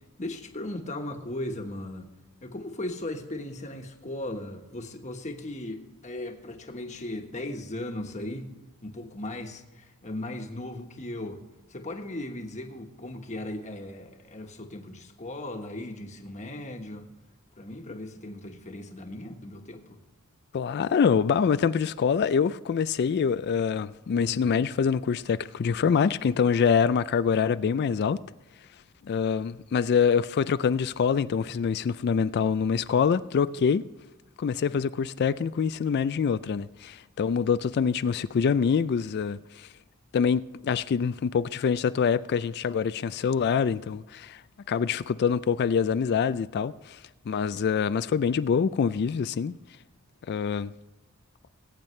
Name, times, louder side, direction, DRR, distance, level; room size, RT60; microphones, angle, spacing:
voice 1, 0.2-2.1 2.4-8.5 8.8-11.4 11.7-17.1 17.6-20.0 24.2-24.5 34.6-34.8, left 1 dB, 35° left, 1.3 m, -37 dB
voice 2, 20.5-28.2 29.0-33.8 34.4-39.7 40.1-44.4 44.7-47.0 47.3-49.5 50.3-50.7, left 6 dB, 50° left, 0.3 m, -25 dB
20.0 x 8.9 x 3.2 m
head